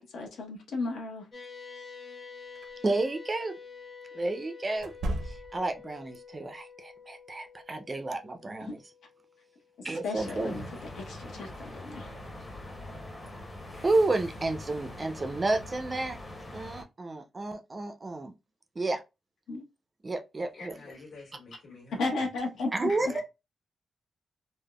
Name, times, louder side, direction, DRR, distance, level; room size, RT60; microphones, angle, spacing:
voice 1, 0.1-1.3 8.6-8.7 9.8-12.1 19.5-19.6 22.0-22.7 23.0-23.1, left 3 dB, 85° left, 0.8 m, -34 dB
sound 1, 1.3-10.0, left 5 dB, 40° left, 0.9 m, -48 dB
sound 2, 2.6-2.7 4.8-5.8, right 1 dB, 80° right, 0.5 m, -35 dB
voice 2, 2.8-3.5 4.1-4.9 5.3-8.8 9.8-10.5 13.8-16.2 16.5-18.3 18.8-19.0 20.0-20.8 22.8-23.2, right 2 dB, 25° right, 0.4 m, -31 dB
sound 3, 10.2-16.8, left 1 dB, 20° left, 0.6 m, -43 dB
voice 3, 20.5-22.1 22.9-23.2, left 3 dB, 65° left, 1.4 m, -46 dB
3.4 x 2.1 x 2.2 m
wide cardioid pair, 160°, 0 cm